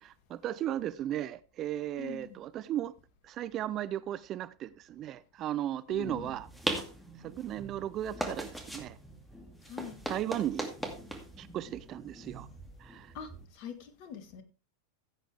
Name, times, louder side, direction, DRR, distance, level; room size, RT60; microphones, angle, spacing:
voice 1, 0.0-2.9 3.2-6.5 7.2-9.0 10.1-10.7 11.4-12.5 12.8-13.1, right 12 dB, 35° right, 0.5 m, -36 dB
voice 2, 2.0-2.4 5.9-6.3 9.6-10.0 13.1-14.4, left 7 dB, 45° left, 1.8 m, -44 dB
sound 1, 5.9-13.5, right 1 dB, ahead, 2.3 m, -40 dB
15.5 x 8.0 x 3.4 m
figure-of-eight pair, 90°, 0 cm